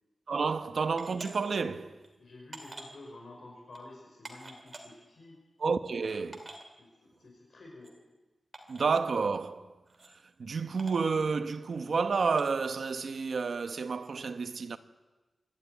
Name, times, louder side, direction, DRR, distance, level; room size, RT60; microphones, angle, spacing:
voice 1, 0.3-2.0 5.6-6.4 8.7-9.7 10.4-14.8, right 5 dB, 65° right, 1.1 m, -30 dB
sound 1, 1.0-1.3 2.0-2.1 2.5-2.9 3.7-3.8 4.2-4.8 5.7-5.8 5.9-6.0 6.3-6.6 7.8-7.9 8.5-8.9 9.9-10.1 10.8-11.1 12.3-12.5, right 2 dB, 35° right, 2.8 m, -46 dB
voice 2, 2.2-5.4 5.8-6.2 6.8-7.9, left 2 dB, 60° left, 5.7 m, -50 dB
25.0 x 12.5 x 9.4 m
wide cardioid pair, 130°, 0 cm